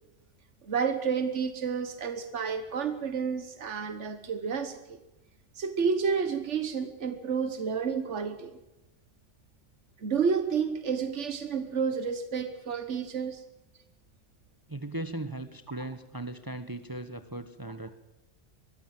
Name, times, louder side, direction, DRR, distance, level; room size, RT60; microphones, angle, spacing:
voice 1, 0.6-5.0 5.5-8.5 10.0-13.4, right 6 dB, 85° right, 9 dB, 1.6 m, -30 dB
voice 2, 14.7-17.9, right 1 dB, 20° right, 10 dB, 1.1 m, -38 dB
22.5 x 15.5 x 7.7 m, 0.95 s
omnidirectional pair, 1.2 m